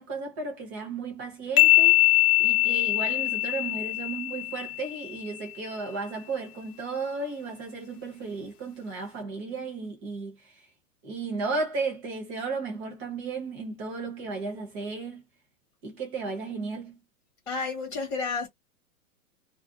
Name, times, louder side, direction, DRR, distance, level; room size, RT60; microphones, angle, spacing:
voice 1, 0.0-10.6 11.0-15.2 15.8-17.0, right 4 dB, 15° right, 0.5 m, -34 dB
sound 1, 1.6-5.1, left 16 dB, 90° left, 0.8 m, -22 dB
voice 2, 17.5-18.5, left 4 dB, 10° left, 1.1 m, -31 dB
2.4 x 2.4 x 2.5 m
hypercardioid pair, 160°, 44 cm